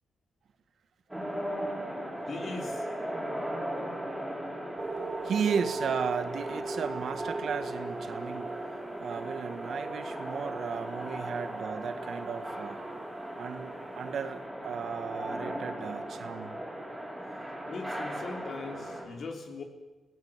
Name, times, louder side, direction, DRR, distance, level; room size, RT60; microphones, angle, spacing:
sound 1, 1.1-19.0, right 1 dB, 5° right, 6.2 m, -38 dB
voice 1, 2.3-2.9 17.7-19.6, left 4 dB, 50° left, 3 dB, 3.9 m, -40 dB
sound 2, 4.8-13.7 14.3-14.4, right 3 dB, 30° right, 1.6 m, -39 dB
voice 2, 5.2-8.6 9.0-12.8 13.4-16.6, right 7 dB, 60° right, 9 dB, 1.7 m, -35 dB
29.0 x 18.5 x 7.6 m, 1.2 s
cardioid pair, 130°, 0 cm